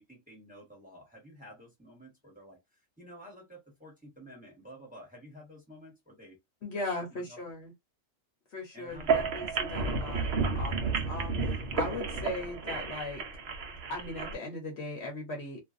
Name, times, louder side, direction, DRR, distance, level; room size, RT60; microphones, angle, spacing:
voice 1, 0.0-2.6 3.0-6.4 6.7-7.4 8.7-9.2, equal, 5° right, 1.1 m, -51 dB
voice 2, 6.6-7.7 8.5-13.2 13.9-15.6, left 2 dB, 60° left, 1.1 m, -38 dB
sound 1, 8.9-14.3, right 4 dB, 60° right, 0.8 m, -31 dB
2.5 x 2.4 x 2.5 m
omnidirectional pair, 1.4 m